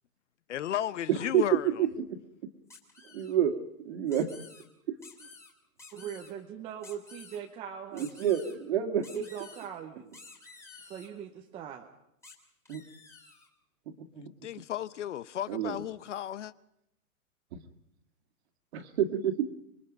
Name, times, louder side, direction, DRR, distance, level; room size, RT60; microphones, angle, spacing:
voice 1, 0.5-1.9 14.2-16.5, left 11 dB, 55° left, 0.9 m, -34 dB
voice 2, 1.1-2.2 3.1-3.5 3.8-4.3 4.9-5.0 7.9-9.3 12.7-12.8 14.1-14.3 15.5-15.8 17.5-17.6 18.7-19.5, right 9 dB, 45° right, 2.1 m, -28 dB
sound 1, 2.7-3.3 4.1-4.6 5.0-5.5 5.8-6.3 6.8-7.4 8.0-8.6 9.0-9.7 10.1-11.1 12.2-12.3 12.7-13.5, left 4 dB, 5° left, 2.6 m, -51 dB
voice 3, 5.9-8.3 9.1-10.2 10.8-11.9, right 8 dB, 15° right, 0.8 m, -41 dB
26.5 x 22.0 x 5.3 m
hypercardioid pair, 150°, 44 cm